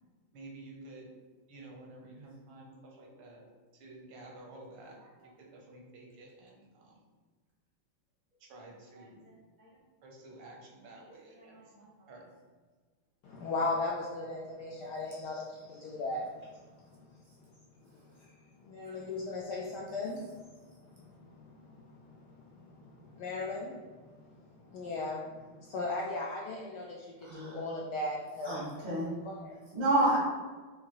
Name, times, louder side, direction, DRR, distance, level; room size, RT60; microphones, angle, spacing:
voice 1, 0.3-1.1 1.5-3.4 3.7-5.0 5.2-7.0 8.4-9.3 10.0-11.6 12.1-12.2, right 2 dB, 80° right, -1 dB, 1.7 m, -51 dB
voice 2, 13.2-16.6 17.0-17.2 18.2-18.3 18.6-28.7 29.2-29.6, left 2 dB, 75° left, -2 dB, 0.9 m, -38 dB
voice 3, 27.2-27.6 28.4-29.1 29.7-30.2, right 1 dB, 40° right, -4 dB, 0.6 m, -29 dB
5.7 x 2.6 x 2.8 m, 1.4 s
omnidirectional pair, 2.3 m